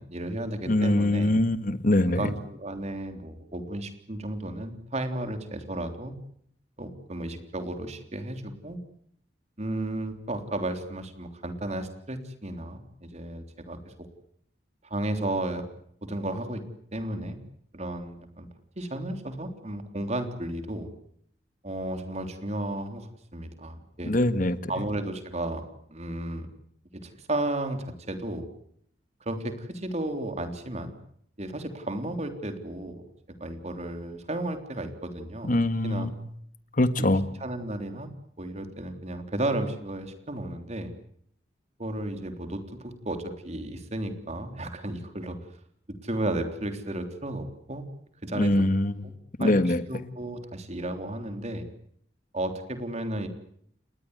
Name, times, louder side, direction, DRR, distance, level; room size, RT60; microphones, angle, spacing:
voice 1, 0.0-1.3 2.1-6.1 6.8-8.8 9.6-13.9 14.8-15.6 16.0-16.6 16.9-17.4 17.7-18.5 18.7-20.9 21.6-24.1 24.7-25.6 25.9-26.5 26.9-28.5 29.2-30.9 31.4-33.0 33.4-35.5 35.8-36.1 37.0-37.1 37.4-38.1 38.4-40.9 41.8-45.4 46.0-47.9 48.2-48.7 49.4-49.6 49.9-51.7 52.3-53.3, right 1 dB, 40° right, 8 dB, 3.4 m, -33 dB
voice 2, 0.7-2.3 24.0-24.6 35.4-36.1 36.8-37.2 48.3-48.9 49.4-49.8, left 1 dB, 50° left, 13 dB, 1.7 m, -23 dB
29.5 x 20.0 x 8.1 m, 0.68 s
head